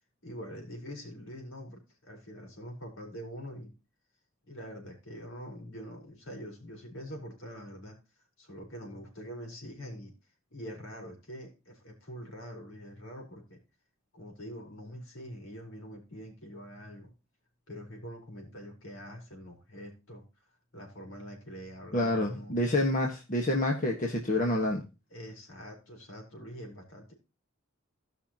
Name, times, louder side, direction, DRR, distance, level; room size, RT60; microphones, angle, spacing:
voice 1, 0.2-3.7 4.5-8.0 8.4-10.1 10.5-13.6 14.1-17.1 17.7-20.5 20.7-22.6 25.1-27.1, equal, 70° left, 1 dB, 4.3 m, -44 dB
voice 2, 21.9-24.8, left 1 dB, 40° left, 1 dB, 1.4 m, -28 dB
17.0 x 5.8 x 2.9 m, 0.29 s
head